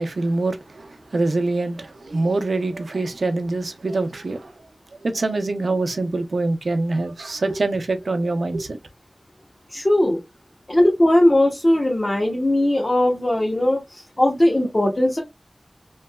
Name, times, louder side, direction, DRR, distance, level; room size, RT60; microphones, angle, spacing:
voice 1, 0.0-4.6 4.9-8.8, right 2 dB, 90° right, 0.4 m, -24 dB
voice 2, 9.7-10.2 10.7-15.2, left 1 dB, 40° left, 0.7 m, -19 dB
3.0 x 2.7 x 2.2 m
wide cardioid pair, 60°, 0 cm